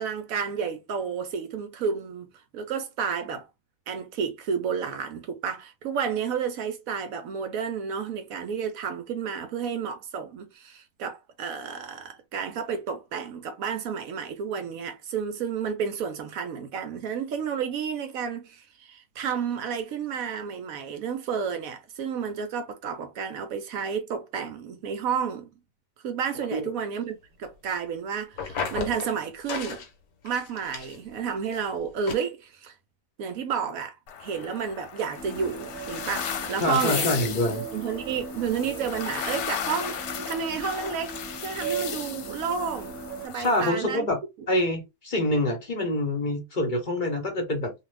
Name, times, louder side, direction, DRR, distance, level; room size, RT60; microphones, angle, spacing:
voice 1, 0.0-3.5 3.9-25.5 26.0-29.8 30.2-32.7 33.2-37.2 37.6-41.2 41.4-42.9 43.2-44.1, right 6 dB, 70° right, 0.9 m, -31 dB
sound 1, 28.3-29.1 29.5-29.9 30.3-31.2 31.5-31.6 32.1-32.2, left 5 dB, 65° left, 1.2 m, -33 dB
sound 2, 34.1-43.7, left 8 dB, 80° left, 1.3 m, -36 dB
sound 3, 35.1-43.3, right 4 dB, 15° right, 0.7 m, -38 dB
voice 2, 36.6-37.6 43.3-44.2 44.5-47.7, left 1 dB, 35° left, 0.9 m, -26 dB
2.5 x 2.4 x 3.2 m
omnidirectional pair, 1.8 m